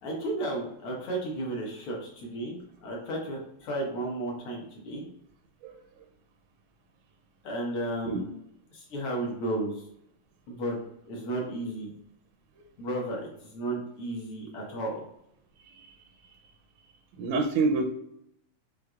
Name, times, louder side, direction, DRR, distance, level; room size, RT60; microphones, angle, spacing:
voice 1, 0.0-5.0 7.4-8.4 8.7-9.8 10.5-10.8 11.1-11.9 12.8-15.0, right 1 dB, 65° left, -2 dB, 1.4 m, -33 dB
voice 2, 17.2-17.9, right 3 dB, 80° right, 4 dB, 1.9 m, -27 dB
6.3 x 2.6 x 2.3 m, 0.75 s
omnidirectional pair, 3.4 m